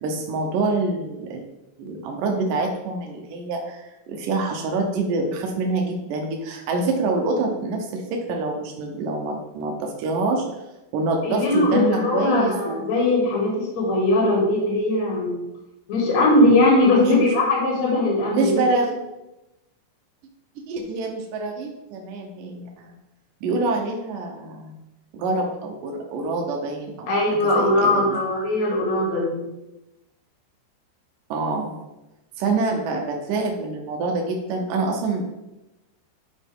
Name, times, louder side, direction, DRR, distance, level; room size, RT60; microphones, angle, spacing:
voice 1, 0.0-1.4 1.8-10.5 10.9-12.8 17.0-17.3 18.3-19.0 20.7-23.0 23.4-24.7 25.1-27.1 27.5-28.2 31.3-31.7 32.4-35.3, right 3 dB, 90° right, 1 dB, 1.8 m, -26 dB
voice 2, 11.2-15.4 15.9-18.5 27.1-29.4, left 2 dB, 45° left, -4 dB, 3.3 m, -20 dB
11.5 x 5.0 x 3.6 m, 0.97 s
omnidirectional pair, 5.2 m